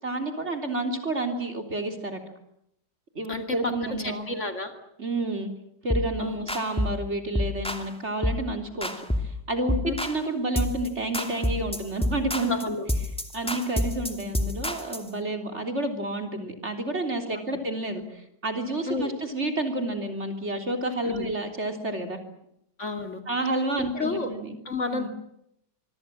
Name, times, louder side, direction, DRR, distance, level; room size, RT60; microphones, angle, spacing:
voice 1, 0.0-2.2 3.2-4.3 5.0-5.5 5.8-8.9 9.2-12.7 13.3-18.0 18.4-22.2 23.3-24.6 24.9-25.1, right 2 dB, 40° right, 5 dB, 3.8 m, -30 dB
voice 2, 3.3-4.7 6.2-6.4 9.8-9.9 12.5-12.9 18.9-19.1 21.1-21.3 22.8-23.2 23.9-24.3 24.6-25.1, left 3 dB, 40° left, 6 dB, 2.9 m, -30 dB
sound 1, 5.9-6.1 6.5-7.0 7.3-7.9 8.2-8.5 8.8-9.4 9.7-10.2 10.6-10.9 11.1-15.1, left 1 dB, 5° left, 2.4 m, -28 dB
25.5 x 24.0 x 7.6 m, 0.77 s
omnidirectional pair, 1.9 m